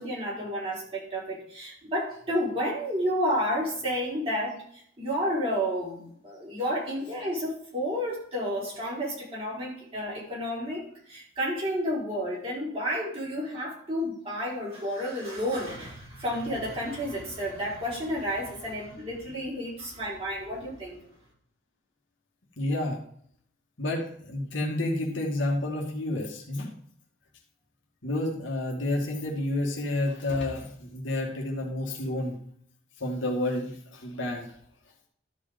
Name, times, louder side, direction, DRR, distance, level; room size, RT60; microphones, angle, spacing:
voice 1, 0.0-4.6 5.0-10.8 11.1-21.0, equal, 30° right, -6 dB, 5.3 m, -31 dB
voice 2, 22.6-23.0 23.8-26.7 28.0-32.4 33.0-34.5, left 1 dB, 65° left, -1 dB, 2.3 m, -30 dB
13.0 x 5.2 x 5.3 m, 0.64 s
head